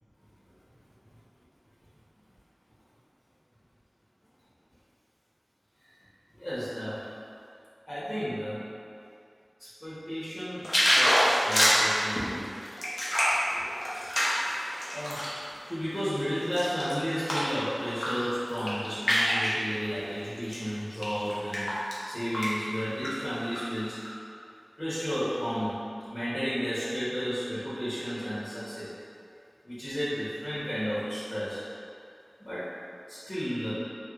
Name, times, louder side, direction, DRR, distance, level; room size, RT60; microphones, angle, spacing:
voice 1, 6.4-7.1 7.9-8.7 9.6-12.5 14.9-15.3 15.7-24.0 24.8-25.8 26.1-28.9 29.6-31.6 32.4-32.7 33.1-33.7, equal, 35° left, -12 dB, 1.0 m, -33 dB
sound 1, 10.6-15.4 15.9-17.5 17.9-18.2 18.5-19.6 20.4-20.5 21.0-22.0 22.3-22.5 22.8-23.6 24.0-24.1, equal, 65° left, 0.6 m, -26 dB
sound 2, 11.2-11.8, equal, 15° right, 0.4 m, -34 dB
2.9 x 2.4 x 3.1 m, 2.5 s
wide cardioid pair, 50°, 0 cm